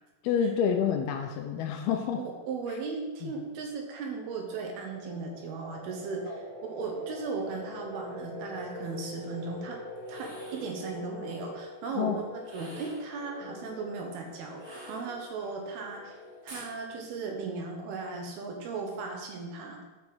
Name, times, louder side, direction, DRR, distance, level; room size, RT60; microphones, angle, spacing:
voice 1, 0.2-2.2 3.2-3.3 6.3-6.4 12.0-12.2, left 7 dB, 75° left, 4 dB, 2.4 m, -28 dB
voice 2, 2.2-9.8 10.1-12.2 12.5-14.6 14.9-16.2 16.4-19.8, right 4 dB, 70° right, 2 dB, 3.0 m, -37 dB
sound 1, 3.5-18.1, left 1 dB, 60° left, 3.1 m, -45 dB
sound 2, 10.0-10.8 12.4-13.1 14.6-15.5 16.5-16.8, right 1 dB, 45° right, 2.8 m, -48 dB
9.7 x 5.6 x 6.1 m, 1.2 s
omnidirectional pair, 4.8 m